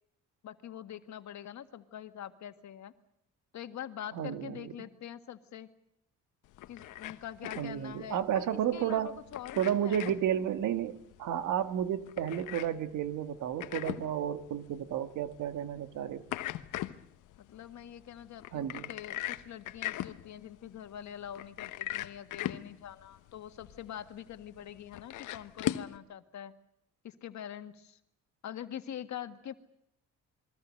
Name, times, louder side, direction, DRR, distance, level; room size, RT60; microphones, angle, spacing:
voice 1, 0.4-2.9 3.5-5.7 6.7-10.1 17.4-26.5 27.0-28.0 28.4-29.5, left 10 dB, 65° left, 9 dB, 1.8 m, -44 dB
voice 2, 4.1-4.7 7.6-9.1 9.6-16.2 18.5-18.9, right 10 dB, 80° right, 9 dB, 1.9 m, -32 dB
sound 1, 6.5-26.0, left 14 dB, 90° left, 1.1 m, -41 dB
28.0 x 22.5 x 6.6 m, 0.79 s
cardioid pair, 90°, 30 cm